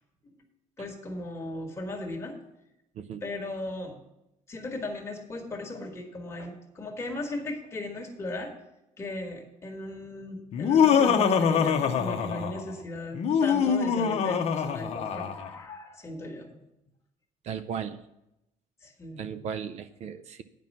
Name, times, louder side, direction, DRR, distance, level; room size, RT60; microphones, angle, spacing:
voice 1, 0.8-2.4 3.2-4.0 4.5-8.5 9.0-16.6 18.8-19.3, left 2 dB, 20° left, 1 dB, 1.5 m, -37 dB
Laughter, 10.5-12.7 13.1-15.5, left 7 dB, 45° left, 0.8 m, -24 dB
voice 2, 17.4-18.0 19.2-20.4, right 7 dB, 50° right, 12 dB, 0.5 m, -36 dB
9.3 x 5.4 x 7.2 m, 0.88 s
cardioid pair, 165°, 14 cm